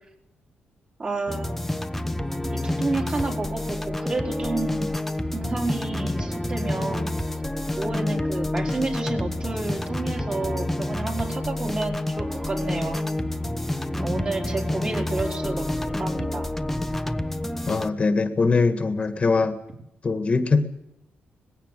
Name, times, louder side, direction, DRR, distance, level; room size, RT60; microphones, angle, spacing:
voice 1, 1.0-1.6 2.5-4.9 5.3-7.1 7.8-13.0 14.0-16.6, right 3 dB, 30° right, 2 dB, 4.4 m, -30 dB
sound 1, 1.3-17.9, left 1 dB, 5° left, 1.1 m, -28 dB
voice 2, 17.7-19.6 20.0-20.7, left 4 dB, 35° left, 9 dB, 1.8 m, -22 dB
20.0 x 16.5 x 9.2 m, 0.83 s
cardioid pair, 105°, 4 cm